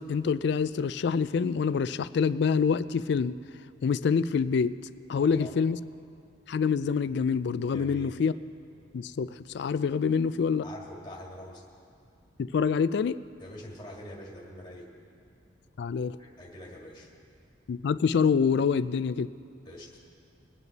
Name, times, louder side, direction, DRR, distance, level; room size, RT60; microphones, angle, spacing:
voice 1, 0.0-3.3 3.8-4.8 5.1-5.8 6.5-8.3 8.9-9.3 9.5-10.6 12.4-13.2 15.8-16.2 17.7-19.3, left 6 dB, 55° left, 15 dB, 0.3 m, -26 dB
voice 2, 5.2-5.5 7.7-8.2 10.6-11.6 13.4-14.9 16.2-17.1 19.6-19.9, equal, 20° left, -3 dB, 1.8 m, -44 dB
22.0 x 9.1 x 4.0 m, 2.4 s
head